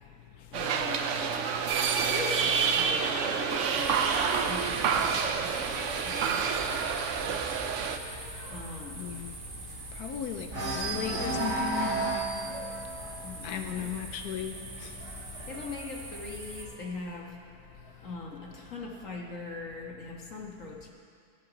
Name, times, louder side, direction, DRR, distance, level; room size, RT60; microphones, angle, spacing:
voice 1, 0.5-1.3 2.0-7.4 8.5-9.1 13.2-13.9 15.5-17.4 18.0-20.9, left 3 dB, 55° left, 1.8 m, -41 dB
sound 1, 0.5-8.0, right 6 dB, 60° right, 0.9 m, -28 dB
sound 2, 2.3-5.3 5.7-6.1 6.3-6.4 6.8-10.1 10.5-17.0 17.9-18.9, right 2 dB, 85° right, 2.7 m, -37 dB
sound 3, 3.7-16.6, right 2 dB, 35° right, 2.0 m, -43 dB
voice 2, 9.0-9.4 9.9-12.3 13.4-15.0, left 8 dB, 80° left, 1.2 m, -36 dB
17.0 x 8.1 x 5.1 m
omnidirectional pair, 1.6 m